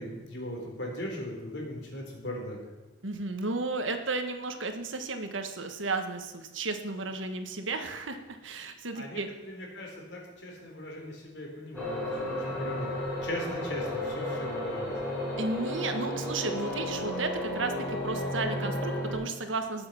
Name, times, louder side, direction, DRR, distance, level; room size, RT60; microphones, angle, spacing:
voice 1, 0.0-2.6 8.9-9.2 9.5-12.9 13.2-14.9, left 1 dB, 60° left, 0 dB, 4.0 m, -38 dB
voice 2, 3.0-9.3 15.4-19.9, right 3 dB, 85° right, 7 dB, 1.5 m, -33 dB
sound 1, 11.7-19.1, left 1 dB, 5° left, 6.0 m, -33 dB
18.5 x 7.8 x 5.9 m, 1.2 s
head